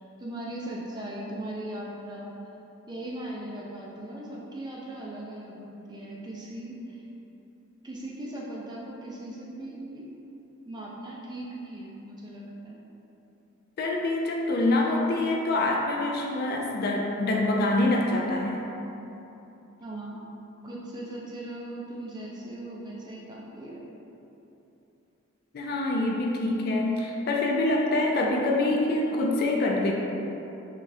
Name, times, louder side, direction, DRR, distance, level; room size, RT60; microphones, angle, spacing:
voice 1, 0.2-2.3 2.9-7.0 7.8-10.1 10.7-12.8 19.8-20.3 20.6-23.9, right 1 dB, 20° right, -4 dB, 0.4 m, -38 dB
voice 2, 13.8-18.7 25.5-29.9, left 2 dB, 45° left, 0 dB, 0.3 m, -25 dB
5.9 x 2.4 x 2.6 m, 3.0 s
head